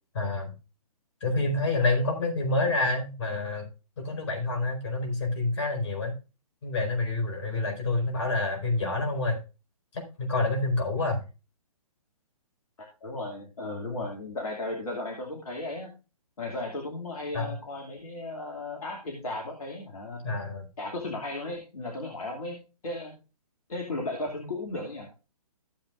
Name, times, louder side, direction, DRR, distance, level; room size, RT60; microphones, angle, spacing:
voice 1, 0.1-0.5 1.2-3.6 4.0-6.1 6.6-9.4 10.2-11.2 17.3-17.5 20.2-20.7, left 2 dB, 50° left, 3 dB, 4.9 m, -27 dB
voice 2, 13.0-15.9 16.4-20.2 20.8-23.2 23.7-25.1, left 2 dB, 65° left, 0 dB, 2.5 m, -35 dB
15.0 x 7.6 x 2.5 m, 0.31 s
figure-of-eight pair, 130°, 20 cm